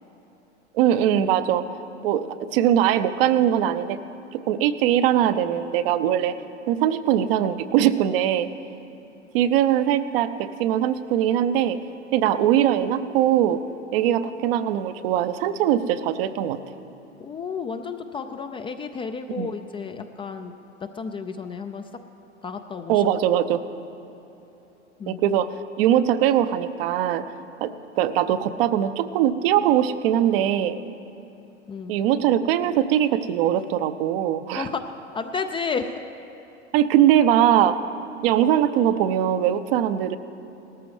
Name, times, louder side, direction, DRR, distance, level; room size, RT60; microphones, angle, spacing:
voice 1, 0.7-1.6 2.0-4.0 4.3-6.3 6.7-8.5 9.3-11.8 12.1-13.6 13.9-16.6 19.4-19.5 22.9-23.6 25.1-25.5 25.8-27.2 27.6-30.8 31.9-34.7 36.7-37.8 38.2-40.2, right 11 dB, 55° right, 12 dB, 0.7 m, -21 dB
voice 2, 17.2-20.5 20.8-22.0 22.4-23.0 25.0-25.2 31.7-32.0 34.5-35.9, left 5 dB, 15° left, 8 dB, 0.4 m, -32 dB
18.5 x 13.5 x 3.2 m, 3.0 s
figure-of-eight pair, 90°, 35 cm